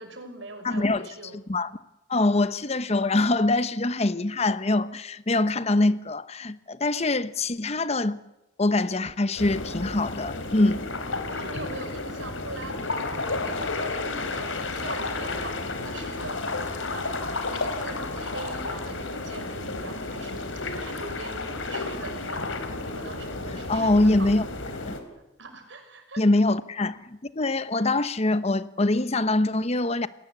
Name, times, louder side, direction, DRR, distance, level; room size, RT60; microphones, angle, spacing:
voice 1, 0.0-1.4 11.3-16.5 16.9-17.1 17.5-20.5 20.8-22.5 22.9-24.5 25.4-26.2, right 2 dB, 75° right, 5.8 m, -41 dB
voice 2, 0.6-1.7 2.1-8.2 8.6-10.8 23.7-24.4 24.9-25.0 26.2-30.1, left 2 dB, 35° left, 0.9 m, -24 dB
sound 1, 9.4-25.0, left 3 dB, 85° left, 3.9 m, -32 dB
29.5 x 20.5 x 8.3 m
head